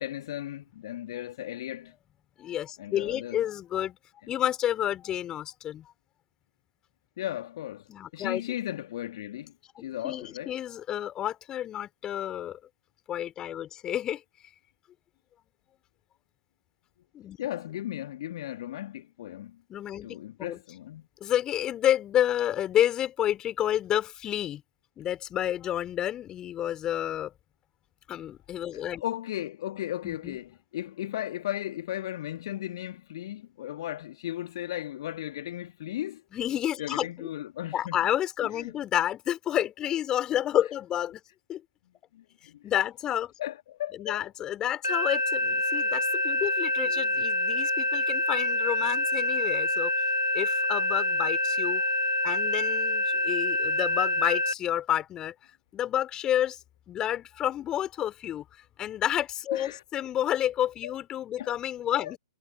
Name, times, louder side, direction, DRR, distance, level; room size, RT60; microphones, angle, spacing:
voice 1, 0.0-1.9 2.8-3.4 7.2-10.5 17.4-19.6 20.0-21.1 28.7-36.2 36.8-38.0 38.5-38.7 42.1-42.6 43.4-44.2 45.7-45.8 46.4-46.5 46.9-47.1 59.5-59.8 60.8-60.9 61.4-61.5 61.9-62.2, left 12 dB, 50° left, 1.7 m, -36 dB
voice 2, 2.4-4.0 4.3-5.9 7.9-8.4 9.8-12.6 13.1-14.2 17.1-17.4 19.7-20.6 21.2-24.6 25.0-27.3 28.1-29.0 30.0-30.4 36.3-37.3 37.7-41.2 41.5-41.6 42.6-43.3 44.0-49.9 50.3-51.8 52.2-55.3 55.7-56.6 56.9-58.4 58.8-62.2, left 11 dB, 20° left, 3.6 m, -30 dB
sound 1, 44.8-54.5, left 2 dB, 85° left, 3.8 m, -26 dB
figure-of-eight pair, 115°, 3 cm